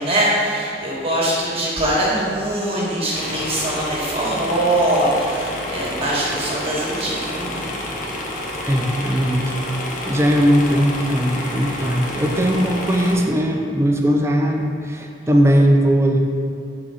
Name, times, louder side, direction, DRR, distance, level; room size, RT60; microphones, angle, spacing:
voice 1, 0.0-7.6, right 1 dB, 35° right, -6 dB, 1.3 m, -22 dB
sound 1, 3.1-13.2, left 1 dB, 50° left, 0.8 m, -29 dB
voice 2, 8.7-9.5 10.0-16.2, equal, 15° right, 2 dB, 0.4 m, -18 dB
5.3 x 3.8 x 4.7 m, 2.3 s
head